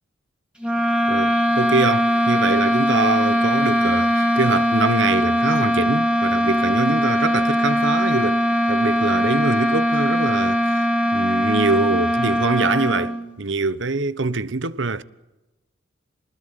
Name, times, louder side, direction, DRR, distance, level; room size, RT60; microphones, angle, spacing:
sound 1, 0.6-13.3, equal, 5° right, 3.2 m, -20 dB
voice 1, 1.1-8.4 8.7-10.6 11.1-15.0, right 3 dB, 70° right, 1.1 m, -24 dB
28.0 x 20.0 x 9.2 m
head